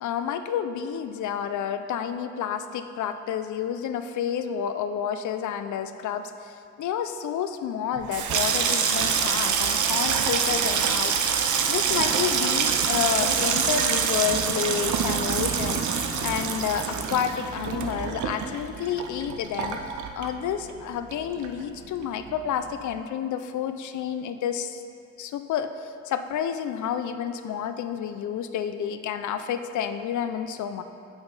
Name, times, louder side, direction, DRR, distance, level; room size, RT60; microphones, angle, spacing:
voice 1, 0.0-11.4 11.7-19.8 20.1-24.8 25.2-30.8, left 8 dB, 85° left, 9 dB, 0.5 m, -30 dB
Water tap faucet / Sink (filling or washing), 8.0-20.8 21.1-21.8 22.0-22.4, right 6 dB, 90° right, 0.6 m, -25 dB
7.8 x 5.8 x 4.0 m, 2.5 s
wide cardioid pair, 160°, 29 cm